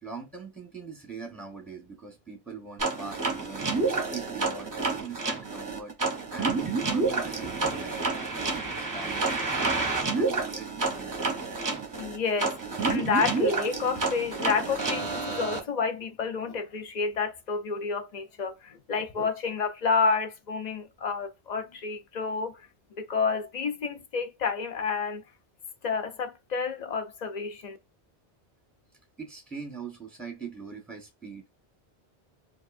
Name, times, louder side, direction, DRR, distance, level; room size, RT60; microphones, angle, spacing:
voice 1, 0.0-3.7 4.1-4.7 5.0-5.9 6.3-9.3 9.6-11.4 29.2-31.6, right 4 dB, ahead, 1.0 m, -42 dB
sound 1, 2.8-15.6, right 3 dB, 20° right, 0.6 m, -29 dB
voice 2, 12.0-12.6 12.9-22.7 23.0-25.2 25.8-27.8, left 5 dB, 50° left, 0.6 m, -29 dB
4.7 x 2.3 x 2.5 m
omnidirectional pair, 1.1 m